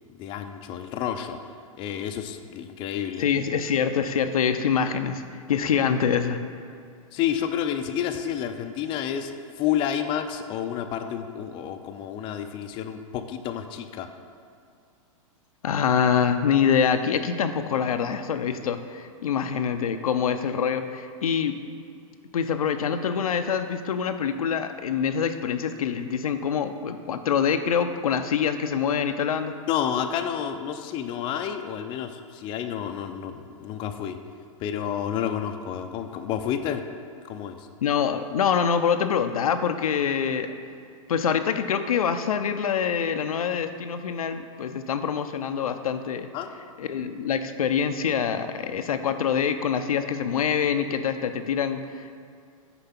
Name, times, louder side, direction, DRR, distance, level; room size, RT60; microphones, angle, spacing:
voice 1, 0.1-1.4 1.8-3.3 7.1-14.1 29.7-34.2 34.6-36.8 37.2-37.7 46.3-46.5, left 9 dB, 30° left, 7 dB, 0.4 m, -30 dB
voice 2, 3.2-6.4 15.6-21.6 22.3-29.5 37.8-40.5 41.1-46.3 46.8-52.2, left 7 dB, 85° left, 8 dB, 0.6 m, -25 dB
6.8 x 4.5 x 5.9 m, 2.4 s
hypercardioid pair, 135°, 18 cm